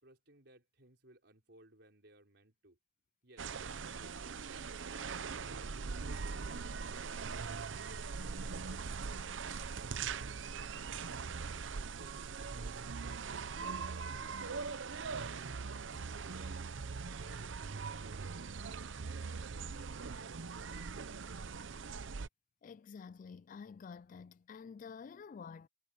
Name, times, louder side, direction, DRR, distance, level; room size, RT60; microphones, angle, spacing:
voice 1, 0.0-2.8 3.2-9.2 9.6-11.2 11.5-12.3 12.5-14.7 15.2-19.8, right 1 dB, 60° right, 5.3 m, -63 dB
sound 1, 3.4-22.3, right 5 dB, 80° right, 0.7 m, -41 dB
voice 2, 22.6-25.7, left 5 dB, 45° left, 0.3 m, -49 dB
head